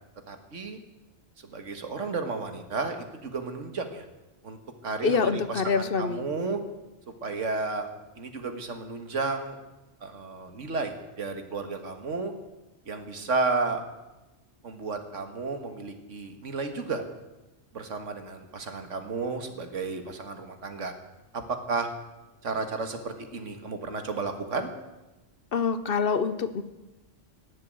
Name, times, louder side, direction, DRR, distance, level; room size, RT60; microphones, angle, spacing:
voice 1, 0.3-0.8 1.5-4.1 4.4-4.6 4.8-6.6 7.2-7.9 8.2-9.6 10.0-12.3 12.9-13.8 14.6-17.0 17.7-20.9 21.3-21.9 22.4-24.7, right 3 dB, 80° right, 7 dB, 1.9 m, -32 dB
voice 2, 5.0-6.2 25.5-26.6, left 5 dB, 55° left, 12 dB, 0.9 m, -26 dB
17.5 x 7.5 x 9.2 m, 1.0 s
omnidirectional pair, 1.2 m